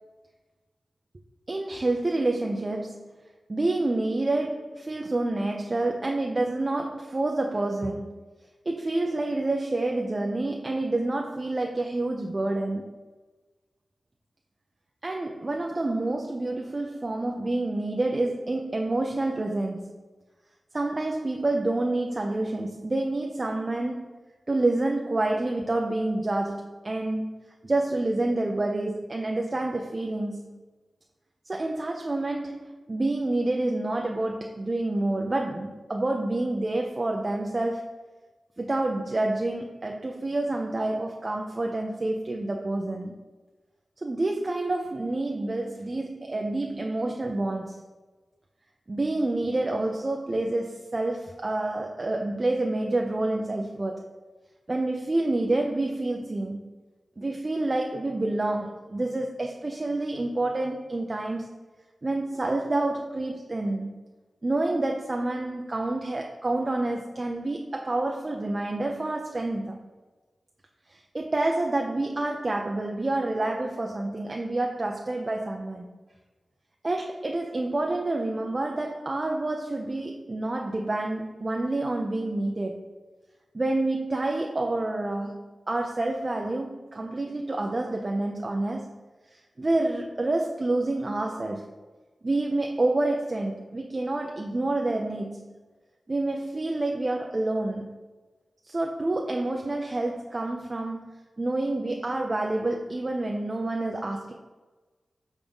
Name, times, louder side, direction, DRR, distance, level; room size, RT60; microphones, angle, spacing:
voice 1, 1.5-3.1 3.5-8.1 8.7-12.9 15.0-19.9 20.7-24.2 24.5-27.3 27.6-30.6 31.5-37.9 38.6-43.1 44.0-47.8 48.9-54.1 54.7-56.7 57.2-61.5 62.0-64.0 64.4-69.8 70.9-75.9 76.8-82.9 83.5-89.0 89.3-91.7 92.2-95.5 96.1-98.0 98.6-104.3, right 2 dB, 35° right, 1 dB, 0.5 m, -28 dB
5.3 x 3.6 x 5.3 m, 1.3 s
wide cardioid pair, 90°, 0 cm